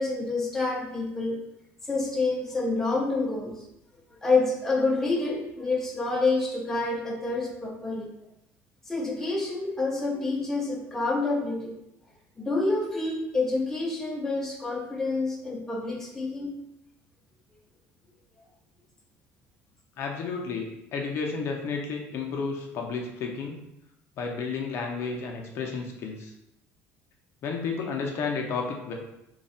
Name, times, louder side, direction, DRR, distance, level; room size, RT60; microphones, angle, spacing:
voice 1, 0.0-1.4 1.8-3.7 4.1-8.1 8.9-11.8 12.4-16.5, left 3 dB, 5° left, -2 dB, 0.6 m, -28 dB
voice 2, 20.0-23.6 24.2-26.3 27.4-28.9, left 5 dB, 50° left, 1 dB, 0.5 m, -32 dB
3.2 x 2.3 x 4.1 m, 0.85 s
cardioid pair, 145°, 5 cm